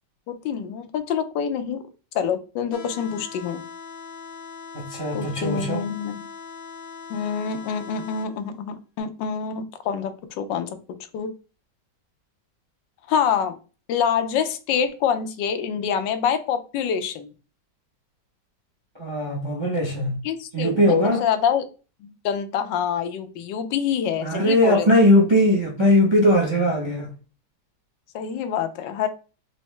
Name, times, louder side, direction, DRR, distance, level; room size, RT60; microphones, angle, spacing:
voice 1, 0.3-1.8 2.1-3.6 5.1-6.2 7.1-10.8 11.1-11.3 13.1-13.6 13.9-17.3 20.2-21.6 22.0-24.9 28.1-29.1, left 7 dB, 85° left, 1.3 m, -26 dB
sound 1, 2.7-8.7, left 5 dB, 60° left, 1.0 m, -40 dB
voice 2, 4.7-5.8 19.0-20.1 20.5-21.2 24.2-27.1, left 1 dB, 30° right, 0.5 m, -19 dB
4.1 x 2.7 x 3.2 m
omnidirectional pair, 1.9 m